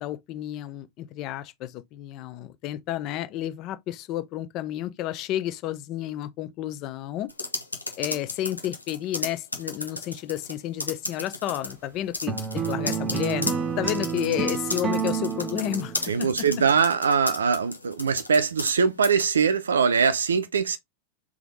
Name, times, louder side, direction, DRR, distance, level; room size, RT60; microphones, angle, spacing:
voice 1, 0.0-7.3 8.0-15.9 16.2-16.5, left 13 dB, 40° left, 0.6 m, -31 dB
sound 1, 7.3-10.5 10.8-11.7 12.1-18.8 19.0-19.3, left 2 dB, 85° left, 0.8 m, -33 dB
sound 2, 12.3-16.4, right 6 dB, 20° right, 0.8 m, -29 dB
voice 2, 16.0-20.8, right 6 dB, 70° right, 0.6 m, -22 dB
3.6 x 3.5 x 3.1 m
figure-of-eight pair, 90°, 0 cm